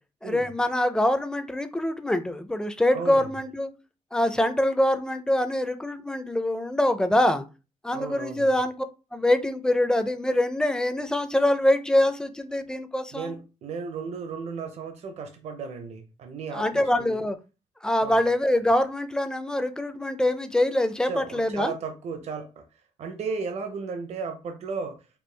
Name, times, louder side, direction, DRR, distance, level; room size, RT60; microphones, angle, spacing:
voice 1, 0.2-3.7 4.1-7.4 7.8-8.9 9.1-13.3 16.5-17.4 17.8-21.7, left 1 dB, 5° left, 0.5 m, -24 dB
voice 2, 2.9-3.3 7.9-8.5 13.1-17.2 18.0-18.2 21.1-22.6 23.0-25.0, right 5 dB, 60° right, 0.6 m, -35 dB
4.5 x 2.4 x 3.3 m
cardioid pair, 95°, 13 cm